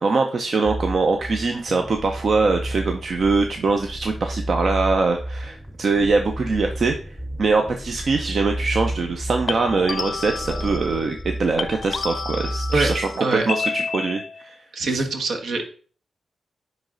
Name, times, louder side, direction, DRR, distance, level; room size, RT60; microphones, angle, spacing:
voice 1, 0.0-7.0 7.4-14.6 14.9-15.0, right 4 dB, 65° right, 4 dB, 0.6 m, -22 dB
sound 1, 0.6-13.2, right 1 dB, 5° right, 0.7 m, -32 dB
sound 2, 4.5-4.8 9.5-11.3 11.6-14.5, left 5 dB, 60° left, 0.5 m, -30 dB
sound 3, 5.4-10.8, right 2 dB, 35° right, 3.4 m, -45 dB
voice 2, 14.7-15.7, right 3 dB, 80° right, 3 dB, 1.2 m, -23 dB
9.7 x 3.2 x 3.9 m, 0.41 s
cardioid pair, 60°, 0 cm